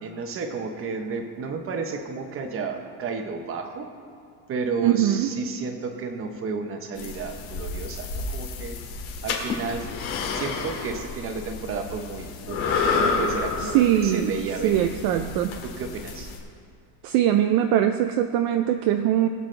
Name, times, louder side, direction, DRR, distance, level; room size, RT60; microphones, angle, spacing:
voice 1, 0.0-3.9 4.5-8.8 9.2-9.9 10.3-15.3 15.6-16.3, right 4 dB, 30° right, 5 dB, 0.9 m, -32 dB
voice 2, 4.8-5.3 13.6-14.3 14.6-15.6 17.0-19.3, right 11 dB, 55° right, 7 dB, 0.5 m, -22 dB
sound 1, 7.0-16.4, left 4 dB, 85° left, 2.5 m, -30 dB
21.0 x 7.9 x 3.3 m, 2.4 s
cardioid pair, 175°, 47 cm